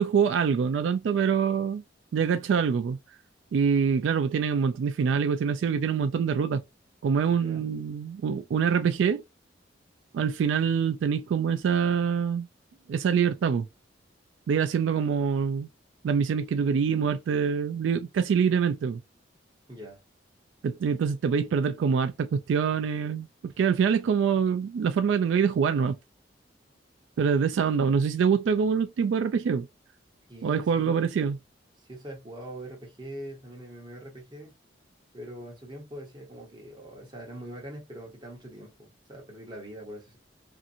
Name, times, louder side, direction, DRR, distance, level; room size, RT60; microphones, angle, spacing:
voice 1, 0.0-1.8 2.1-3.0 3.5-6.6 7.0-9.2 10.1-12.5 12.9-13.7 14.5-15.7 16.0-19.0 20.6-26.0 27.2-29.7 30.4-31.4, right 6 dB, 80° right, 0.3 m, -25 dB
voice 2, 7.3-7.7 19.7-20.0 30.3-31.0 31.8-34.5 35.1-40.2, right 1 dB, 25° right, 1.2 m, -43 dB
2.7 x 2.5 x 2.6 m
head